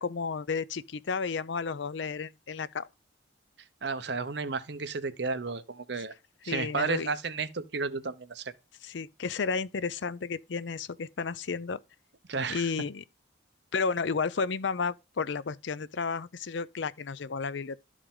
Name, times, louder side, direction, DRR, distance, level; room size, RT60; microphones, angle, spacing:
voice 1, 0.0-2.9 6.4-7.1 8.8-11.8 12.5-13.0 13.7-17.8, left 5 dB, 70° left, 0.5 m, -32 dB
voice 2, 3.8-6.1 6.4-8.5 12.3-12.7, right 4 dB, 60° right, 0.8 m, -32 dB
12.5 x 4.9 x 3.7 m
head